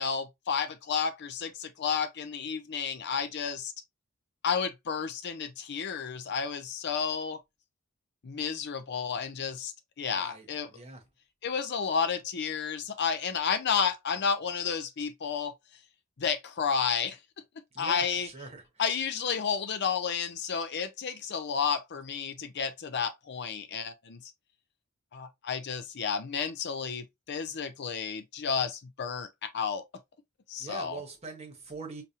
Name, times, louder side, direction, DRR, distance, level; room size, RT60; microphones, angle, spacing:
voice 1, 0.0-3.7 4.4-7.4 8.2-9.7 10.0-10.7 11.4-15.5 16.2-17.2 17.8-18.3 18.8-24.3 25.1-29.8 30.5-31.0, left 6 dB, 55° left, 0.5 m, -31 dB
voice 2, 10.1-10.5 10.7-11.0 17.7-18.6 30.6-32.0, right 3 dB, 30° right, 1.1 m, -42 dB
5.2 x 2.0 x 2.8 m
head